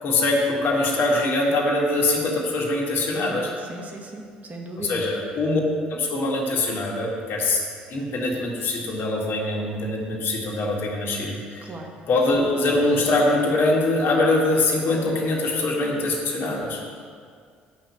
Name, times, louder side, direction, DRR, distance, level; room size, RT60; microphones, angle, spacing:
voice 1, 0.0-3.5 4.8-5.6 5.9-7.6 7.9-11.7 12.1-17.0, left 2 dB, 50° left, -2 dB, 1.9 m, -23 dB
voice 2, 3.6-5.0 11.6-11.9, right 2 dB, 30° right, 1 dB, 1.7 m, -37 dB
8.9 x 5.9 x 7.5 m, 2.1 s
figure-of-eight pair, 50°, 5 cm